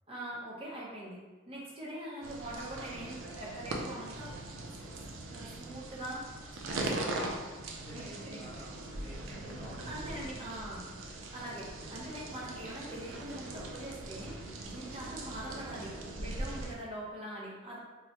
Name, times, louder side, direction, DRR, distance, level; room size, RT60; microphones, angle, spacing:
voice 1, 0.1-5.0 5.3-6.2 6.5-7.4 7.9-8.4 9.8-10.8 11.3-17.8, right 1 dB, 30° right, -5 dB, 0.7 m, -43 dB
sound 1, 2.2-16.8, right 2 dB, 80° right, 0.4 m, -41 dB
voice 2, 7.7-10.7 11.5-11.7 16.3-17.0, equal, 25° left, -11 dB, 0.6 m, -52 dB
3.1 x 2.2 x 2.8 m, 1.2 s
head